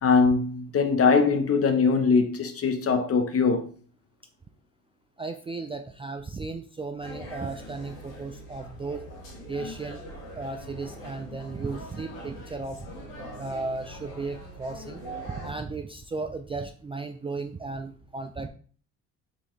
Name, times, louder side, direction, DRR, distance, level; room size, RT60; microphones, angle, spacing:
voice 1, 0.0-3.6, left 5 dB, 40° left, 0.8 m, -22 dB
voice 2, 5.2-9.0 9.5-10.0 10.4-12.9 13.4-18.5, right 3 dB, 15° right, 0.3 m, -35 dB
sound 1, 7.0-15.5, equal, 70° left, 1.7 m, -42 dB
4.0 x 3.8 x 3.1 m
supercardioid pair, 65°, 35 cm